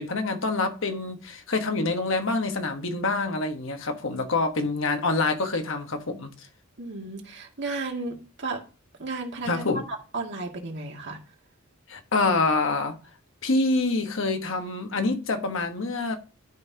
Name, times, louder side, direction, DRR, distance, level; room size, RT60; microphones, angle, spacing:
voice 1, 0.0-6.3 9.4-9.8 11.9-13.0 13.4-16.2, left 3 dB, 65° left, 1.2 m, -26 dB
voice 2, 6.8-8.6 9.0-9.7 10.1-11.2, right 3 dB, 55° right, 2.0 m, -33 dB
11.5 x 5.5 x 2.8 m
head